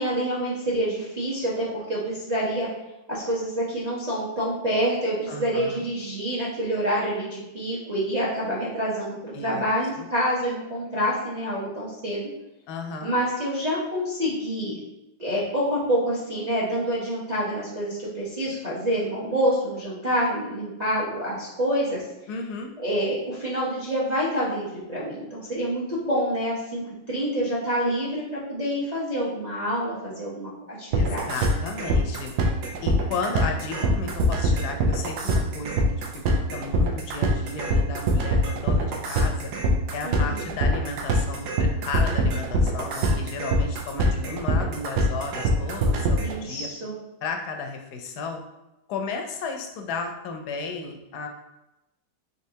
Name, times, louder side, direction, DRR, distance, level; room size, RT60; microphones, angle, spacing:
voice 1, 0.0-2.7 3.1-12.3 13.0-14.8 15.2-22.0 22.8-26.8 27.1-31.2 40.0-40.5 46.2-47.0, equal, 40° right, -7 dB, 0.6 m, -27 dB
voice 2, 5.3-5.8 9.3-9.6 10.0-10.1 12.7-13.1 22.3-22.7 30.9-32.3 32.8-36.0 36.5-39.5 39.9-46.7 47.2-48.4 48.9-51.3, left 4 dB, 75° left, 4 dB, 1.0 m, -34 dB
sound 1, 30.9-46.4, right 1 dB, 70° right, 1.1 m, -23 dB
4.2 x 3.6 x 2.7 m, 0.92 s
omnidirectional pair, 2.1 m